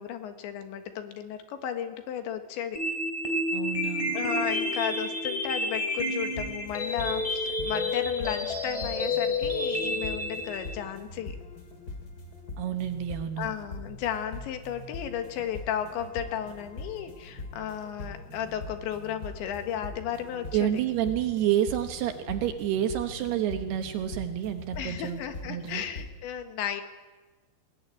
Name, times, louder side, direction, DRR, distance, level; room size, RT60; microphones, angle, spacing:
voice 1, 0.0-2.8 4.1-11.4 13.4-20.7 24.8-26.8, left 9 dB, 75° left, 8 dB, 3.7 m, -34 dB
sound 1, 2.7-10.7, left 2 dB, 10° left, 3.3 m, -30 dB
voice 2, 3.5-4.2 12.6-13.5 20.5-25.8, right 11 dB, 70° right, 8 dB, 2.8 m, -29 dB
sound 2, 6.2-26.1, left 2 dB, 25° left, 2.6 m, -42 dB
20.5 x 18.5 x 9.8 m, 1.3 s
omnidirectional pair, 5.5 m